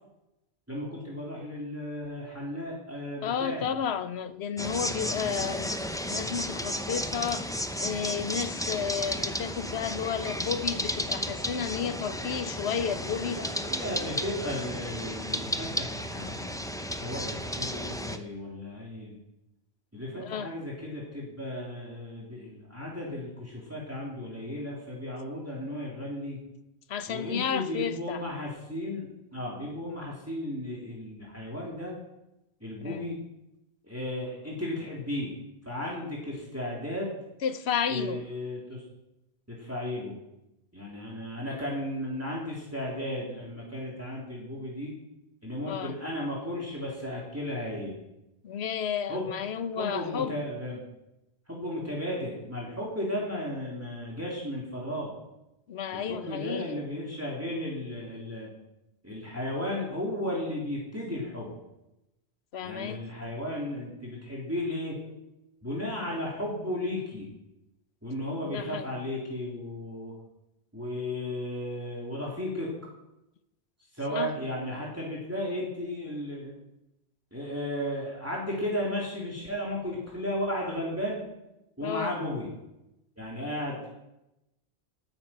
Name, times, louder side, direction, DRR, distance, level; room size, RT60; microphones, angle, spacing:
voice 1, 0.7-3.7 4.8-5.5 13.4-16.6 16.9-19.1 19.9-26.4 27.1-29.1 29.3-31.9 32.6-33.2 33.8-35.3 35.6-37.2 37.9-38.8 39.5-40.1 40.7-44.9 45.4-48.0 49.1-49.3 49.7-50.8 51.5-55.1 55.9-58.5 59.0-61.5 62.6-65.0 65.6-67.3 68.0-70.1 70.7-72.7 73.9-76.5 77.3-81.2 81.8-82.5 83.2-83.9, left 1 dB, 15° right, 3.5 m, -34 dB
voice 2, 3.2-5.8 6.0-13.4 20.2-20.5 26.9-28.2 32.8-33.0 37.4-38.2 45.7-45.9 48.4-50.4 55.7-56.8 62.5-63.1 68.4-68.9 74.1-74.3 81.8-82.2, left 7 dB, 70° left, 1.1 m, -32 dB
sound 1, 4.6-18.2, equal, 5° left, 0.6 m, -33 dB
19.5 x 9.0 x 5.9 m
omnidirectional pair, 1.1 m